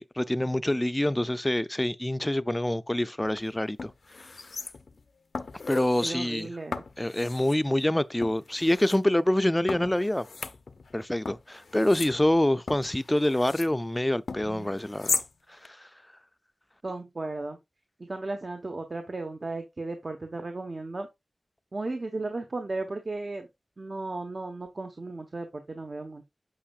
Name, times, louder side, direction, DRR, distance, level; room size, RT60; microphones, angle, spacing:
voice 1, 0.0-3.9 5.7-6.5 7.0-10.3 10.9-15.2, left 1 dB, 15° left, 0.5 m, -26 dB
sound 1, 3.2-3.4 3.8-5.0 5.3-6.1 6.7-7.6 8.2-9.0 9.7-11.0 11.3-13.7 14.3-15.3 15.6-15.7, left 4 dB, 80° left, 0.6 m, -36 dB
voice 2, 6.0-6.8 14.4-14.8 16.8-17.6 18.0-21.1 21.7-23.5 23.8-26.2, right 2 dB, 55° right, 1.1 m, -35 dB
8.6 x 5.6 x 2.4 m
cardioid pair, 50°, 0 cm